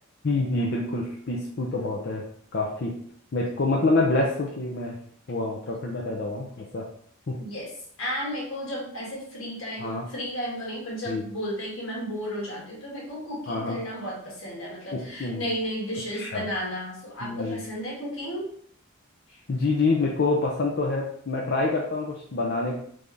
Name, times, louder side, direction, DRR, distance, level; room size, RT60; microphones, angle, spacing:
voice 1, 0.2-2.2 2.5-2.9 3.3-5.0 5.3-6.8 7.3-7.4 9.8-10.1 11.1-11.3 13.5-13.8 14.9-15.4 16.1-16.5 17.2-17.6 19.5-22.8, left 2 dB, 55° left, -1 dB, 0.6 m, -26 dB
voice 2, 7.4-7.7 8.0-18.5 19.3-19.4, equal, 80° left, -3 dB, 1.8 m, -33 dB
3.9 x 3.4 x 3.5 m, 0.62 s
head